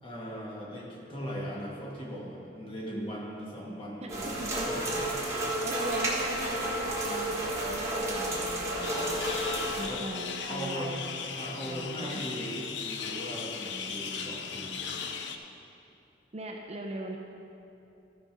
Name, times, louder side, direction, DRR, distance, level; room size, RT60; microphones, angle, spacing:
voice 1, 0.0-4.4 4.7-5.0 9.8-10.0 10.5-10.9 11.3-14.8, equal, 30° left, -5 dB, 2.0 m, -39 dB
sound 1, 4.1-9.9, right 1 dB, 15° right, 1.5 m, -31 dB
voice 2, 4.4-4.9 5.2-9.4 9.8-11.2 11.6-12.2 16.3-17.2, right 1 dB, 35° right, 1 dB, 0.7 m, -40 dB
sound 2, 8.8-15.4, left 6 dB, 70° left, 0.6 m, -37 dB
13.5 x 5.1 x 6.1 m, 2.7 s
head